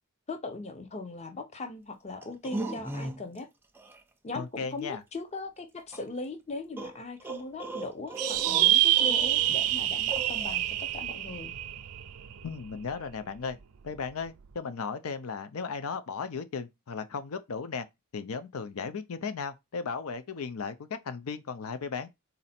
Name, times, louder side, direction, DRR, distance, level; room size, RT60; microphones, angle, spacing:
voice 1, 0.3-3.5 4.2-11.5, left 3 dB, 30° left, 0.6 m, -39 dB
sound 1, 2.2-3.4 3.7-4.0 5.9-6.0 6.8-9.8 10.1-10.6, right 3 dB, 10° right, 0.4 m, -38 dB
voice 2, 4.3-5.0 12.4-13.6 13.8-17.9 18.1-22.1, left 5 dB, 75° left, 0.5 m, -36 dB
sound 2, 8.2-12.9, right 13 dB, 85° right, 0.4 m, -26 dB
4.1 x 2.7 x 4.2 m
head